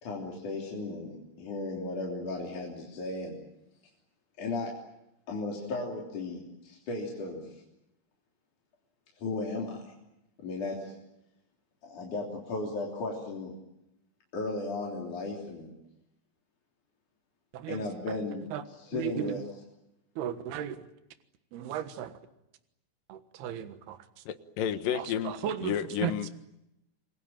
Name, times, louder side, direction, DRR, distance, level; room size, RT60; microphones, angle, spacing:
voice 1, 0.0-3.4 4.4-4.7 5.3-7.6 9.2-9.9 10.4-10.9 11.8-13.5 14.3-15.7 17.7-18.5 18.9-19.4, left 3 dB, 50° left, -2 dB, 4.7 m, -35 dB
voice 2, 17.5-18.2 18.5-18.6 18.9-19.4 20.2-20.9 21.5-22.2 23.1-24.0 24.9-26.3, right 10 dB, 75° right, 9 dB, 3.4 m, -36 dB
voice 3, 24.3-25.3 25.6-26.3, left 9 dB, 65° left, 10 dB, 2.7 m, -31 dB
28.0 x 21.5 x 8.9 m, 0.87 s
omnidirectional pair, 4.7 m